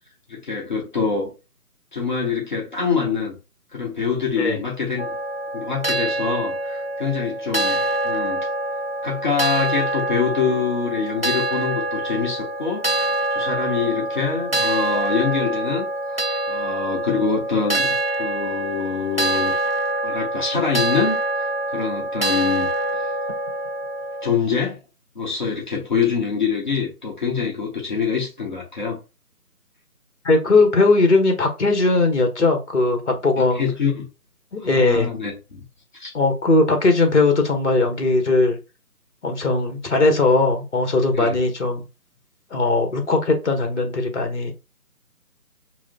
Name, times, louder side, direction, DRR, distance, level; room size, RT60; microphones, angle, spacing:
voice 1, 0.3-1.3 1.9-3.4 3.7-5.0 5.5-8.5 9.0-16.2 16.5-19.6 20.0-22.7 23.0-23.1 24.2-24.8 25.1-29.0 33.4-34.0 34.6-35.6 36.0-36.1 41.1-41.4, left 5 dB, 30° left, 1.2 m, -25 dB
sound 1, 5.0-24.4, right 2 dB, 40° right, 0.4 m, -25 dB
voice 2, 30.2-33.6 34.5-35.1 36.1-38.6 39.2-41.8 42.5-44.5, left 3 dB, 45° left, 1.4 m, -19 dB
4.8 x 2.2 x 3.7 m
figure-of-eight pair, 155°, 46 cm